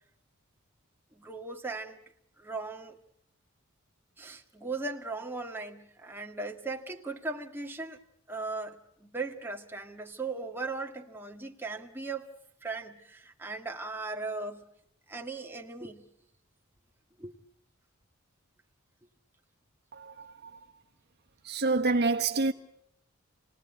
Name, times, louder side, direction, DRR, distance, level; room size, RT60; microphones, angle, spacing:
voice 1, 1.1-2.0 2.4-3.0 4.2-8.0 8.3-12.3 12.6-14.7 15.1-16.1 17.2-17.3, right 3 dB, 10° right, 1.8 m, -38 dB
voice 2, 19.9-20.6 21.4-22.5, right 3 dB, 50° right, 1.3 m, -28 dB
29.0 x 19.0 x 9.3 m
head